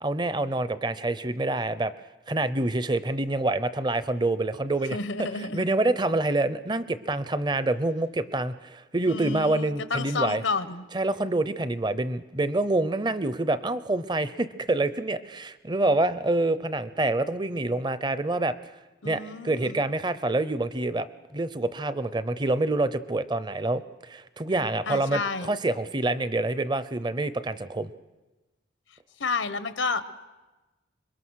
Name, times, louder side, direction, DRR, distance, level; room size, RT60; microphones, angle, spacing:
voice 1, 0.0-1.9 2.3-5.0 5.5-10.4 10.9-18.6 19.0-21.1 21.3-27.9, right 2 dB, 25° right, 14 dB, 0.7 m, -27 dB
voice 2, 4.9-5.6 9.1-10.8 19.0-19.8 24.9-25.5 29.2-30.2, left 4 dB, 85° left, 12 dB, 1.1 m, -31 dB
26.0 x 22.5 x 6.4 m, 1.1 s
head